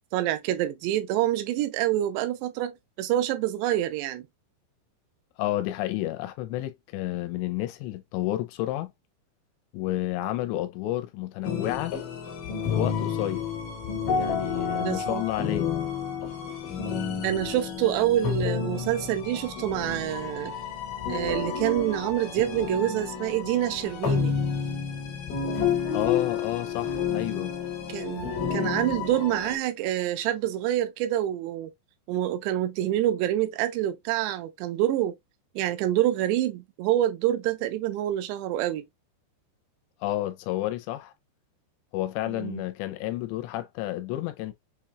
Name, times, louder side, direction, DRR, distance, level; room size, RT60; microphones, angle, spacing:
voice 1, 0.1-4.3 14.8-15.2 17.2-20.5 21.1-24.4 27.9-31.7 32.1-35.2 35.6-38.9 42.3-42.6, right 13 dB, 85° right, 2.8 m, -27 dB
voice 2, 5.4-8.9 9.7-12.0 12.7-13.5 14.1-15.7 25.9-27.6 40.0-41.1 41.9-44.5, left 15 dB, 85° left, 2.7 m, -30 dB
sound 1, 11.4-29.6, left 6 dB, 65° left, 2.2 m, -30 dB
7.1 x 2.8 x 2.3 m
omnidirectional pair, 5.1 m